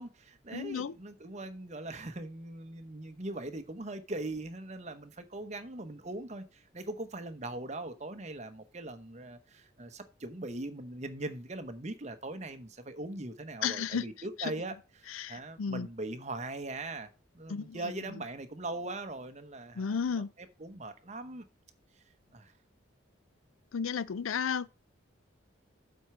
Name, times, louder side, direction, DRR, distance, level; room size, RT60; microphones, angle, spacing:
voice 1, 0.0-17.1 17.3-20.0 20.4-21.4 22.3-22.5, right 2 dB, 35° right, 0.9 m, -40 dB
voice 2, 0.5-1.0 13.6-14.1 14.4-14.5 15.1-15.9 17.5-17.9 19.7-20.3 23.7-24.7, left 6 dB, 85° left, 0.5 m, -33 dB
7.9 x 4.5 x 5.9 m
head